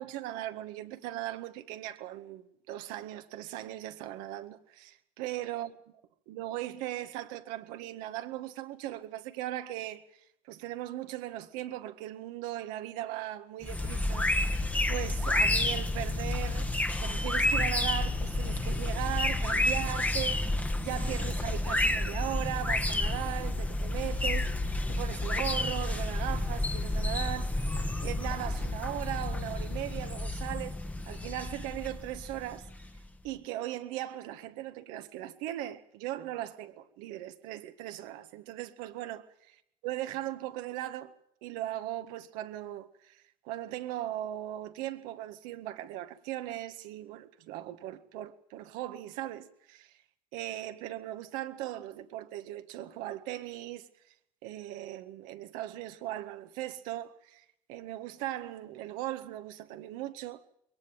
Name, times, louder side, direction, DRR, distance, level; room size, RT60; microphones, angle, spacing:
voice 1, 0.0-5.7 6.3-10.0 10.5-16.7 17.0-20.4 20.8-24.5 24.9-27.7 28.0-30.8 31.1-32.7 33.2-39.3 39.8-41.1 41.4-49.9 50.3-53.9 54.4-60.4, right 14 dB, 80° right, 1.7 m, -38 dB
sound 1, 13.6-33.1, left 2 dB, 10° left, 1.3 m, -30 dB
22.5 x 18.5 x 7.4 m
supercardioid pair, 90°, 14 cm